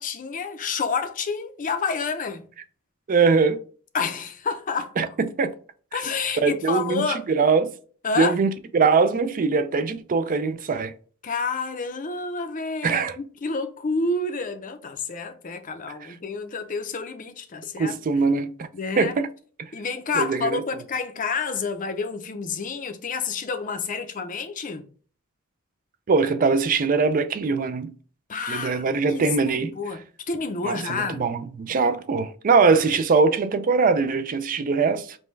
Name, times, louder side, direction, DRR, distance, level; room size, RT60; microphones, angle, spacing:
voice 1, 0.0-2.4 3.9-5.1 5.9-7.2 8.0-8.4 11.2-18.0 18.7-19.1 19.7-24.9 28.3-31.2, left 4 dB, 40° left, 0.5 m, -29 dB
voice 2, 3.1-3.6 5.0-5.1 5.4-5.5 6.4-7.7 8.2-10.9 12.8-13.2 17.8-18.7 19.0-19.3 20.1-20.6 26.1-27.9 28.5-29.7 30.6-35.2, right 4 dB, 40° right, 0.4 m, -22 dB
5.2 x 2.2 x 3.1 m
head